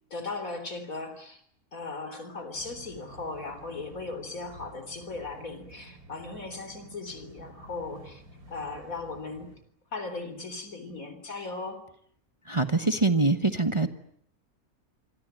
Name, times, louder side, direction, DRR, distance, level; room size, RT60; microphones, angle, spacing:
voice 1, 0.1-1.4 1.7-8.2 8.5-9.5 9.9-11.8, left 3 dB, 65° left, 10 dB, 4.3 m, -37 dB
sound 1, 2.5-9.6, right 1 dB, 80° right, 5.8 m, -51 dB
voice 2, 12.5-13.9, right 3 dB, 20° right, 8 dB, 1.2 m, -24 dB
27.0 x 22.5 x 9.0 m, 0.65 s
omnidirectional pair, 1.5 m